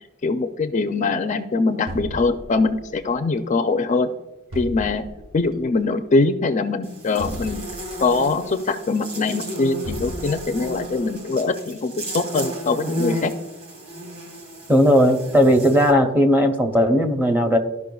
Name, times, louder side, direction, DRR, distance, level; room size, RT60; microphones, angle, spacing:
voice 1, 0.2-4.1 4.6-5.0 5.3-7.6 8.0-13.3, left 3 dB, 35° left, 8 dB, 0.4 m, -22 dB
sound 1, 1.9-3.0 4.5-5.5 7.2-8.3 9.9-10.8, equal, 70° right, 1.1 m, -35 dB
Buzz, 6.8-15.9, equal, 35° right, 1.6 m, -33 dB
voice 2, 14.7-17.6, equal, 10° right, 5 dB, 0.7 m, -17 dB
13.5 x 5.4 x 2.3 m, 1.1 s
head